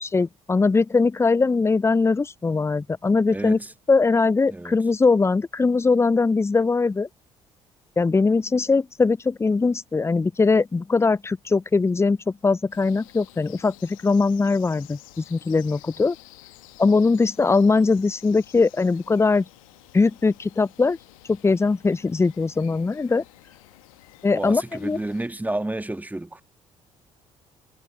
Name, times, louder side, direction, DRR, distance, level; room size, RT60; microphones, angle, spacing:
voice 1, 0.0-3.6 3.9-7.1 8.0-12.2 12.4-16.2 16.8-19.4 19.9-21.0 21.3-23.2 24.2-25.0, left 4 dB, 15° left, 0.5 m, -21 dB
voice 2, 3.3-3.7 4.5-4.8 24.3-26.4, right 1 dB, 10° right, 1.7 m, -30 dB
sound 1, 12.7-25.3, left 21 dB, 75° left, 1.6 m, -51 dB
figure-of-eight pair, 45°, 18 cm